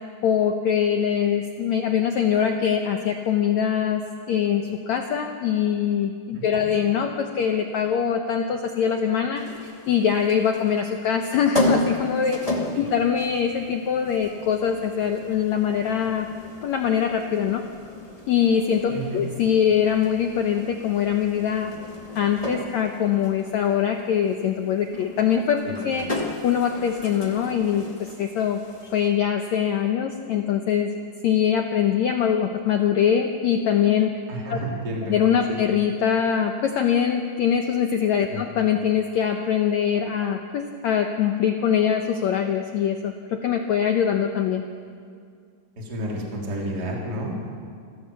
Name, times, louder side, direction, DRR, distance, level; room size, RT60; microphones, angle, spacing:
voice 1, 0.2-4.0 4.3-16.3 16.6-17.6 18.3-21.7 22.1-26.1 26.4-28.6 28.9-30.9 31.2-34.2 34.5-34.6 35.1-44.6, left 8 dB, 75° left, 5 dB, 1.6 m, -23 dB
sound 1, 9.4-29.1, left 1 dB, 15° left, 1.1 m, -34 dB
voice 2, 18.9-19.2 25.6-25.8 34.3-35.1 35.5-35.6 38.3-38.5 45.8-47.5, right 1 dB, 25° right, -2 dB, 3.7 m, -30 dB
27.5 x 16.0 x 7.0 m, 2.2 s
omnidirectional pair, 4.4 m